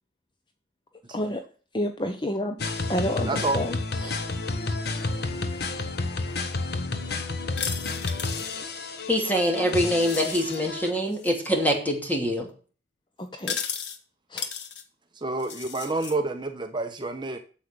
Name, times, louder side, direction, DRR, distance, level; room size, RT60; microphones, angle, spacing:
voice 1, 1.1-1.4 1.7-2.6 2.9-4.2 13.2-13.6 14.3-14.5, left 1 dB, 25° left, 7 dB, 0.9 m, -29 dB
sound 1, 2.6-10.9, left 3 dB, 65° left, 1.3 m, -31 dB
voice 2, 3.2-3.6 15.2-17.4, right 2 dB, 25° right, 6 dB, 1.0 m, -28 dB
sound 2, 7.6-8.6 10.0-10.6 11.1-11.5 13.4-14.0 14.4-14.8 15.4-16.1, left 7 dB, 80° left, 1.5 m, -34 dB
voice 3, 9.1-12.5, equal, 10° left, 2 dB, 2.7 m, -24 dB
8.7 x 7.6 x 6.8 m, 0.39 s
head